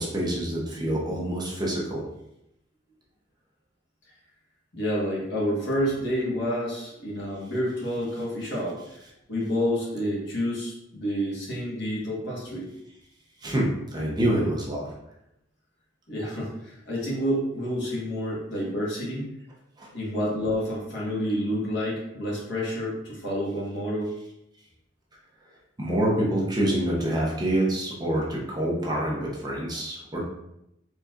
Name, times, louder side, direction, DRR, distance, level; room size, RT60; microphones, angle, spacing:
voice 1, 0.0-2.0 13.4-14.9 19.8-19.9 25.8-30.3, right 1 dB, 20° right, -4 dB, 0.8 m, -26 dB
voice 2, 4.7-9.0 9.3-12.7 16.1-19.3 19.9-24.1, equal, 65° left, -5 dB, 1.4 m, -29 dB
4.1 x 3.3 x 2.5 m, 0.83 s
head